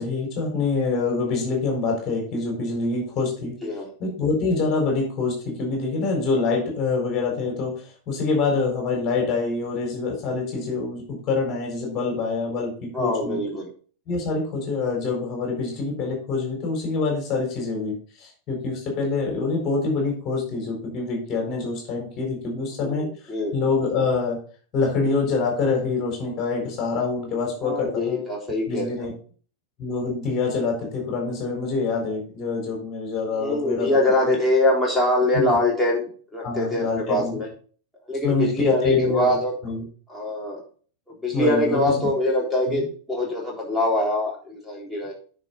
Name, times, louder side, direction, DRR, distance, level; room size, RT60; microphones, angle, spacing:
voice 1, 0.0-3.5 4.0-13.4 14.1-24.4 24.7-28.2 28.7-29.1 29.8-34.4 35.3-35.6 36.4-37.4 38.2-39.8 41.3-42.1 42.7-42.8, left 4 dB, 35° left, 0 dB, 4.2 m, -26 dB
voice 2, 12.9-13.7 22.8-23.5 27.6-29.1 33.4-37.5 38.1-39.5 40.1-40.6 41.1-45.1, left 1 dB, ahead, -5 dB, 3.7 m, -24 dB
9.8 x 5.9 x 4.0 m, 0.42 s
figure-of-eight pair, 90°, 0 cm